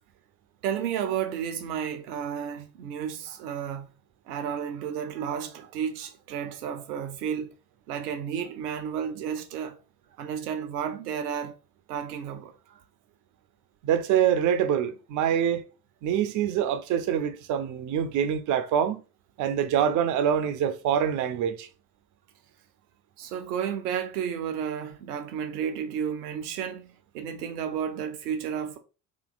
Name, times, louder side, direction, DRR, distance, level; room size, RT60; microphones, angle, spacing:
voice 1, 0.6-3.9 4.3-7.5 7.9-9.8 10.2-11.6 11.9-12.8 23.2-28.8, right 8 dB, 65° right, 0.8 m, -32 dB
voice 2, 13.8-15.6 16.0-19.0 19.4-21.7, right 9 dB, 40° right, 0.6 m, -25 dB
3.1 x 2.8 x 3.9 m
figure-of-eight pair, 60°, 49 cm